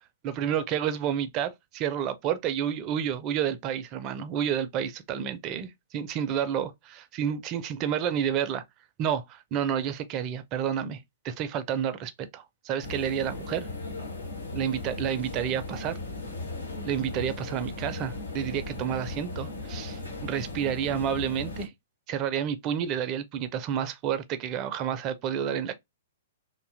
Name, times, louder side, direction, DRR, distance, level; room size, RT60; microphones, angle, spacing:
voice 1, 0.2-8.6 9.0-11.0 11.2-13.7 14.5-16.0 16.8-21.7 22.1-25.8, right 9 dB, 30° right, 0.4 m, -30 dB
sound 1, 12.8-21.7, left 2 dB, 80° left, 1.0 m, -37 dB
2.6 x 2.2 x 2.5 m
figure-of-eight pair, 115°, 0 cm